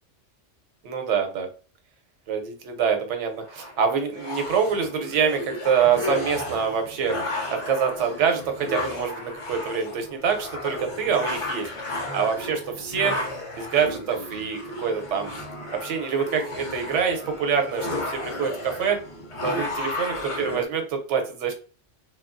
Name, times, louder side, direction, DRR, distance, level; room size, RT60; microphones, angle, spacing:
voice 1, 0.8-1.5 2.3-7.2 7.5-11.7 12.1-13.2 13.5-15.4 15.8-19.0 19.4-21.5, right 6 dB, 75° right, 5 dB, 1.0 m, -25 dB
sound 1, 3.4-20.6, left 2 dB, 35° left, 0.5 m, -33 dB
3.0 x 2.3 x 2.4 m, 0.38 s
omnidirectional pair, 1.3 m